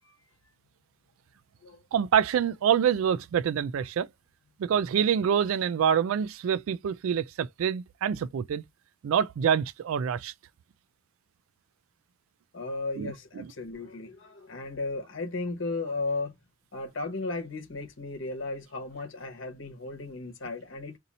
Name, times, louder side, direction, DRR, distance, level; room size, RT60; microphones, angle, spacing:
voice 1, 1.9-4.1 4.6-8.6 9.0-10.3 13.0-13.5, right 8 dB, 75° right, 0.3 m, -26 dB
voice 2, 12.5-16.3 16.7-21.0, left 3 dB, 65° left, 1.1 m, -35 dB
2.7 x 2.6 x 4.1 m
head